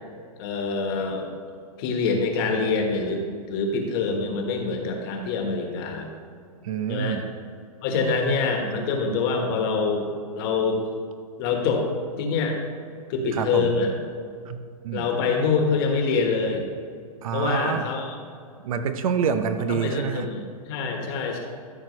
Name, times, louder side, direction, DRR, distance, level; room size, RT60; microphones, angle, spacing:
voice 1, 0.4-1.3 1.8-3.2 3.5-6.1 6.9-7.2 7.8-10.1 10.3-10.8 11.4-11.9 12.2-12.6 13.1-13.9 14.9-16.6 17.3-18.2 19.7-21.4, left 4 dB, 40° left, 2 dB, 1.5 m, -25 dB
voice 2, 6.6-7.3 13.3-13.7 14.5-15.1 17.2-17.8 18.6-20.3, right 7 dB, 65° right, 9 dB, 0.8 m, -27 dB
13.5 x 6.1 x 3.2 m, 2.3 s
hypercardioid pair, 155°, 19 cm